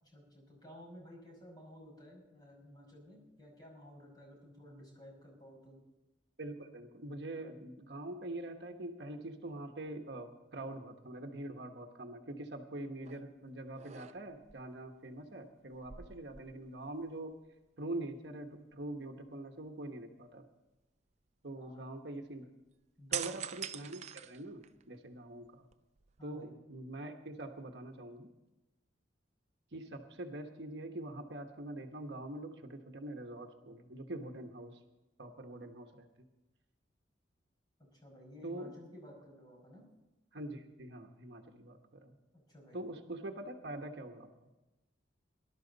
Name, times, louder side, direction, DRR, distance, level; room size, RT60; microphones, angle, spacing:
voice 1, 0.0-5.8 21.6-21.9 23.0-23.4 26.2-26.5 37.9-39.8 42.3-42.8, equal, 20° left, -1 dB, 5.4 m, -54 dB
voice 2, 6.4-17.4 17.8-20.5 21.4-22.5 23.1-25.6 26.2-28.3 29.7-34.8 35.2-36.1 38.4-38.7 40.3-42.2 42.7-44.3, right 1 dB, 60° right, 5 dB, 1.1 m, -44 dB
sound 1, 13.0-13.3 13.7-14.5 15.7-17.0 17.3-17.5 23.1-25.0 25.5-26.4, right 9 dB, 35° right, 0.4 m, -43 dB
19.0 x 12.0 x 4.0 m, 1.0 s
head